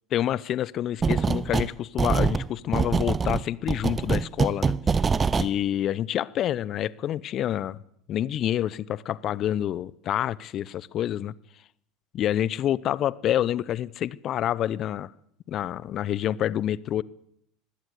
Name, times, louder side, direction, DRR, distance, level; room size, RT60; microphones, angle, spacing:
voice 1, 0.1-5.0 5.4-7.8 8.1-11.3 12.1-15.1 15.5-17.0, left 11 dB, 45° left, 21 dB, 0.8 m, -27 dB
sound 1, 1.0-1.7 2.0-5.5, right 5 dB, 25° right, 0.7 m, -24 dB
20.5 x 17.0 x 8.1 m, 0.74 s
hypercardioid pair, 70°, 0 cm